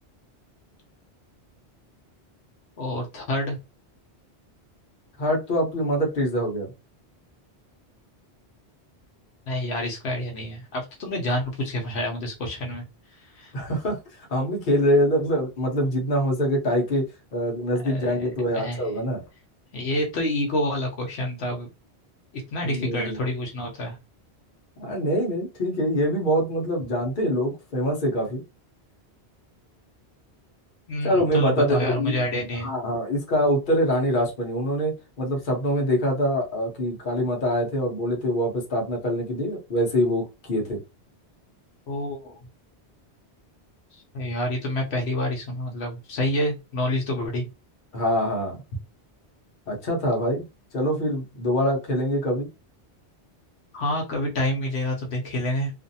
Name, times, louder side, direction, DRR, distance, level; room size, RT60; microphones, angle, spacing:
voice 1, 2.8-3.6 9.5-12.8 13.2-13.5 17.9-18.1 18.5-18.9 19.7-21.7 22.5-24.0 30.9-32.7 41.9-42.4 44.1-47.5 53.7-55.7, left 1 dB, 75° left, 1 dB, 1.0 m, -28 dB
voice 2, 5.2-6.7 13.5-14.0 14.3-17.0 17.3-19.2 22.6-23.2 24.8-28.4 31.0-32.2 32.6-40.8 47.9-48.6 49.7-50.4 50.7-52.5, equal, 50° left, 0 dB, 1.0 m, -24 dB
2.5 x 2.5 x 2.6 m, 0.26 s
omnidirectional pair, 1.1 m